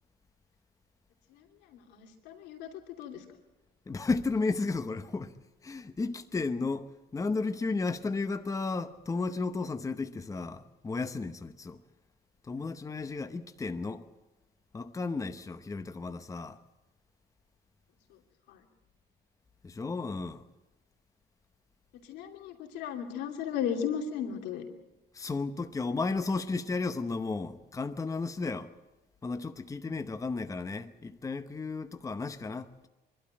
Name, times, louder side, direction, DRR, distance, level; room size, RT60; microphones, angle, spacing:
voice 1, 1.9-2.7 3.0-3.2 22.1-24.6, left 8 dB, 90° left, 2.8 m, -35 dB
voice 2, 3.9-5.3 5.6-11.8 12.4-14.1 14.7-16.6 19.6-20.4 25.1-28.7 29.2-32.9, left 3 dB, 20° left, 0.9 m, -33 dB
25.0 x 12.5 x 9.0 m
cardioid pair, 110°, 17 cm